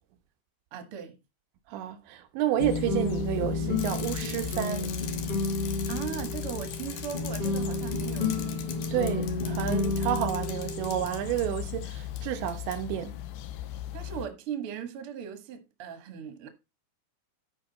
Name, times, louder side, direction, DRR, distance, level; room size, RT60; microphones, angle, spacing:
voice 1, 0.7-1.2 5.9-8.8 13.7-16.5, right 8 dB, 45° right, 1.9 m, -38 dB
voice 2, 1.7-4.9 8.9-13.1, right 11 dB, 85° right, 3.3 m, -30 dB
sound 1, 2.6-14.3, left 13 dB, 85° left, 3.0 m, -38 dB
sound 2, 2.6-11.8, left 3 dB, 30° left, 0.9 m, -32 dB
Bicycle, 3.8-11.4 12.2-12.3 12.5-12.8, left 9 dB, 65° left, 2.3 m, -43 dB
12.5 x 5.5 x 4.2 m
omnidirectional pair, 5.1 m